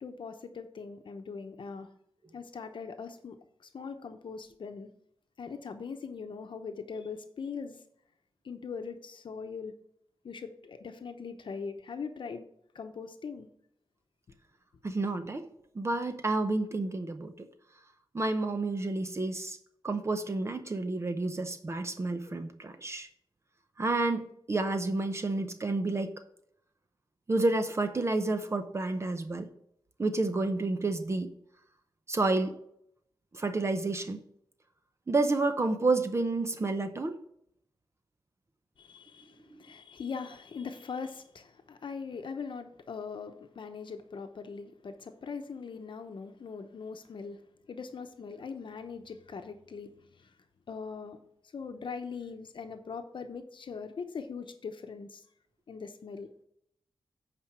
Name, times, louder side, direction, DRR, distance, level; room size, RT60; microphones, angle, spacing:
voice 1, 0.0-1.9 2.3-4.9 5.4-7.8 8.4-9.8 10.2-12.5 12.7-13.5 38.8-47.4 47.7-50.3 50.7-51.2 51.5-55.2 55.7-56.3, left 5 dB, 65° left, 7 dB, 0.8 m, -41 dB
voice 2, 14.8-15.5 15.7-17.5 18.1-19.6 19.8-23.1 23.8-26.1 27.3-29.5 30.0-31.3 32.1-32.6 33.3-34.2 35.1-37.2, right 2 dB, 30° right, 8 dB, 0.7 m, -30 dB
8.8 x 5.1 x 6.0 m, 0.73 s
wide cardioid pair, 160°, 9 cm